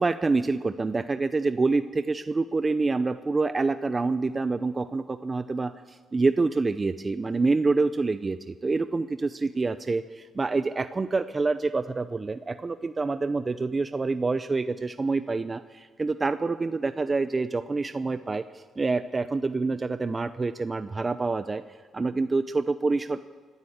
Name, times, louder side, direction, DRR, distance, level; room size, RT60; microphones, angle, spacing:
voice 1, 0.0-21.6 21.9-23.2, right 3 dB, 25° right, 11 dB, 0.7 m, -27 dB
24.5 x 12.5 x 8.7 m, 1.5 s
cardioid pair, 90°, 0 cm